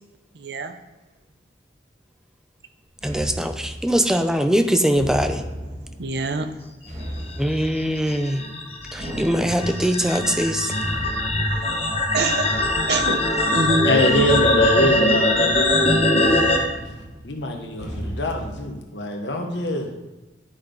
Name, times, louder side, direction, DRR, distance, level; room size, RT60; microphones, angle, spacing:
voice 1, 0.3-0.8 6.0-6.5 12.1-13.9, right 3 dB, 65° right, 8 dB, 0.7 m, -26 dB
voice 2, 3.0-5.4 7.4-8.4 8.9-10.7, equal, 5° right, 7 dB, 0.5 m, -22 dB
sound 1, 3.0-18.6, equal, 40° right, 2.0 m, -36 dB
sound 2, 7.3-16.6, left 1 dB, 30° left, 1.2 m, -21 dB
voice 3, 13.8-16.4 16.8-17.0 17.2-19.9, left 1 dB, 80° left, 3 dB, 1.3 m, -25 dB
11.0 x 5.4 x 3.9 m, 1.1 s
head